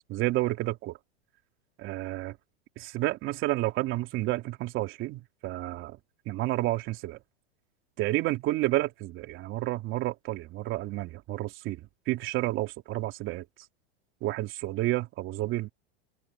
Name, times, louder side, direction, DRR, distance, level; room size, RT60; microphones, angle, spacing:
voice 1, 0.1-1.0 1.8-2.4 2.8-6.0 6.2-7.2 8.0-13.5 14.2-15.7, right 17 dB, 40° right, 3.2 m, -30 dB
open air
supercardioid pair, 135°, 32 cm